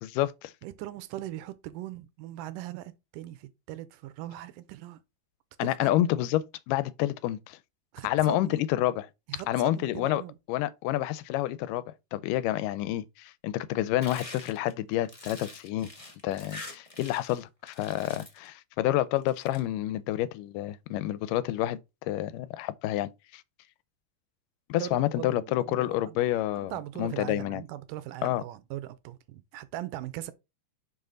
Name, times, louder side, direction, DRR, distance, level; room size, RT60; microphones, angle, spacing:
voice 1, 0.0-0.5 5.6-7.6 8.0-9.1 9.3-10.2 10.5-15.9 16.2-23.4 24.7-27.6 28.2-28.4, left 14 dB, 90° left, 2.2 m, -29 dB
voice 2, 0.6-5.0 5.6-5.9 7.9-8.6 9.3-10.4 24.7-26.2 26.6-30.3, right 14 dB, 85° right, 2.3 m, -40 dB
sound 1, 14.0-17.4 17.7-18.5 19.2-19.6, left 2 dB, 25° left, 0.6 m, -45 dB
5.7 x 5.6 x 3.8 m
omnidirectional pair, 3.7 m